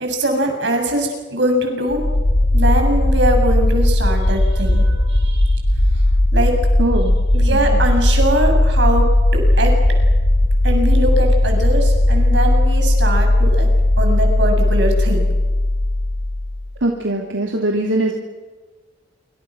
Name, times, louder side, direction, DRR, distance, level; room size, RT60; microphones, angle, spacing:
voice 1, 0.0-2.0 2.5-5.4 6.3-6.5 7.3-9.0 9.3-9.7 10.6-13.7 14.0-15.2, right 1 dB, 70° right, 3 dB, 7.0 m, -21 dB
sound 1, 1.9-16.7, left 1 dB, 70° left, 4.0 m, -16 dB
voice 2, 6.8-7.1 7.7-7.8 16.8-18.1, right 1 dB, 85° right, 0 dB, 3.0 m, -21 dB
27.0 x 25.5 x 6.3 m, 1.3 s
head